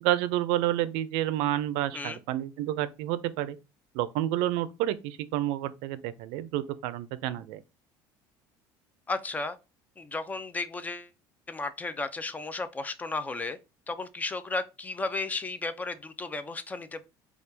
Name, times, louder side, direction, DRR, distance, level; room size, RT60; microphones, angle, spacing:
voice 1, 0.0-3.6 3.9-7.6, right 13 dB, 80° right, 0.4 m, -29 dB
voice 2, 9.1-9.6 10.0-11.1 11.5-13.6 13.9-17.0, left 3 dB, 15° left, 0.4 m, -34 dB
4.4 x 2.3 x 3.3 m
cardioid pair, 125°, 9 cm